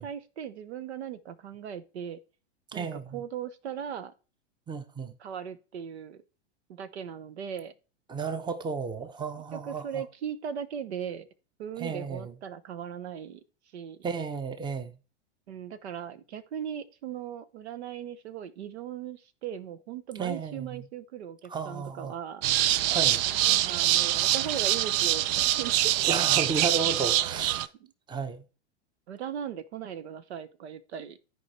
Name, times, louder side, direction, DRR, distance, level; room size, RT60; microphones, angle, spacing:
voice 1, 0.0-2.2 2.7-4.1 5.2-6.2 6.7-7.7 9.5-11.3 11.6-13.4 13.7-14.1 15.5-22.5 23.4-26.1 27.1-27.9 29.1-31.2, right 8 dB, 70° right, 1.0 m, -38 dB
voice 2, 2.7-3.2 4.7-5.1 8.1-10.0 11.8-12.3 14.0-14.9 20.2-20.8 21.5-22.2 22.8-23.2 26.0-27.7 28.1-28.4, right 5 dB, 15° right, 0.9 m, -33 dB
sound 1, 22.4-27.7, right 13 dB, 40° right, 0.5 m, -25 dB
13.5 x 4.8 x 4.2 m
hypercardioid pair, 105°, 34 cm